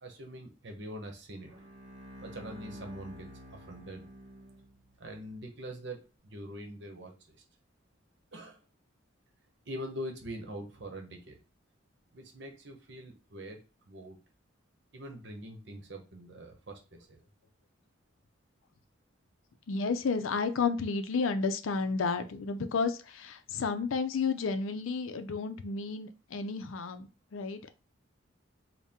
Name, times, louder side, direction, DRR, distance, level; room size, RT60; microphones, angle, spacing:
voice 1, 0.0-1.5 2.2-4.0 5.0-7.4 8.3-8.6 9.7-11.4 12.1-14.2 14.9-17.2, equal, 60° right, 3 dB, 0.9 m, -44 dB
Bowed string instrument, 1.4-5.0, equal, 35° right, 1.1 m, -48 dB
voice 2, 19.7-27.7, left 4 dB, 80° left, 9 dB, 0.5 m, -32 dB
4.2 x 2.1 x 3.5 m, 0.31 s
head